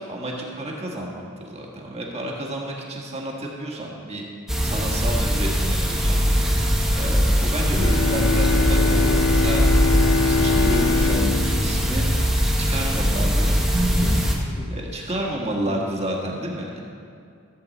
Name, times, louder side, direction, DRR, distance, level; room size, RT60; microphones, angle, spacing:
voice 1, 0.0-4.2 4.6-6.2 6.9-9.6 10.2-12.1 12.6-13.6 14.7-16.8, right 1 dB, 30° right, -1 dB, 1.6 m, -30 dB
sound 1, 4.5-14.3, equal, 5° right, 1.2 m, -21 dB
Bowed string instrument, 7.7-12.7, left 4 dB, 75° left, 0.5 m, -24 dB
voice 2, 13.6-15.9, left 1 dB, 35° left, -3 dB, 1.2 m, -40 dB
14.5 x 7.9 x 4.1 m, 2.4 s
head